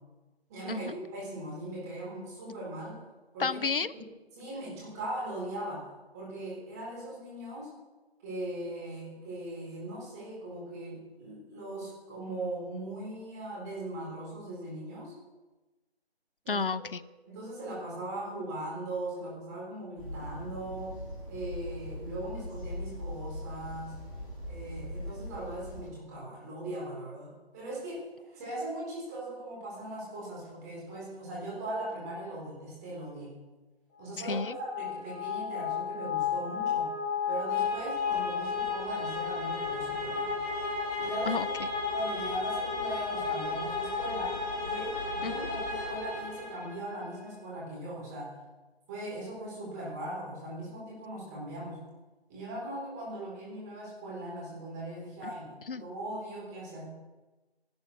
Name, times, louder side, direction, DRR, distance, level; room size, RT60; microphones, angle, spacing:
voice 1, 0.5-3.0 3.3-3.6 3.9-4.1 4.3-5.9 6.1-7.7 8.2-15.2 16.4-16.6 17.3-21.0 21.3-24.0 24.4-33.4 34.0-36.9 37.3-40.4 41.0-41.4 41.9-48.3 48.9-51.8 52.3-56.9, right 1 dB, 15° right, -5 dB, 4.5 m, -39 dB
voice 2, 3.4-3.9 16.5-17.0 34.2-34.6 41.3-41.5 45.2-45.3 55.2-55.3 55.7-55.8, left 4 dB, 55° left, 17 dB, 0.7 m, -31 dB
sound 1, 20.0-25.9, left 1 dB, 10° left, 4.5 m, -41 dB
sound 2, 34.2-47.0, left 5 dB, 35° left, 6.5 m, -33 dB
14.0 x 12.0 x 6.6 m, 1.2 s
figure-of-eight pair, 160°, 32 cm